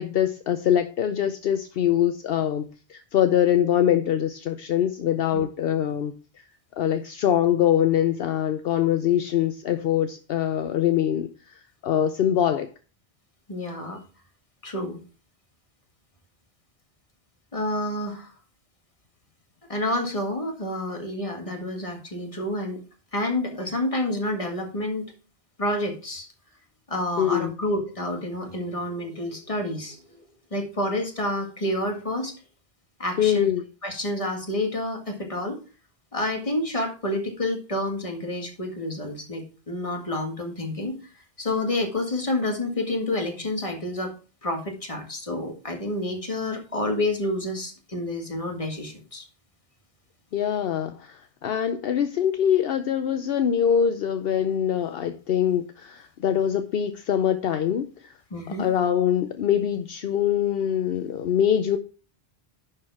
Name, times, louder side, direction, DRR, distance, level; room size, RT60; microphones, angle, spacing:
voice 1, 0.0-6.4 6.8-11.5 11.8-12.7 27.2-27.5 33.2-33.6 50.3-58.1 58.6-61.8, left 9 dB, 70° left, 9 dB, 0.8 m, -23 dB
voice 2, 13.5-14.0 14.6-15.0 17.5-18.3 19.7-22.8 23.1-25.0 25.6-26.3 26.9-30.2 30.5-32.3 33.0-33.5 33.8-35.6 36.1-41.0 41.4-44.1 44.4-49.3 58.3-58.7, left 1 dB, 35° left, 2 dB, 1.9 m, -29 dB
11.0 x 4.6 x 4.6 m, 0.37 s
omnidirectional pair, 1.0 m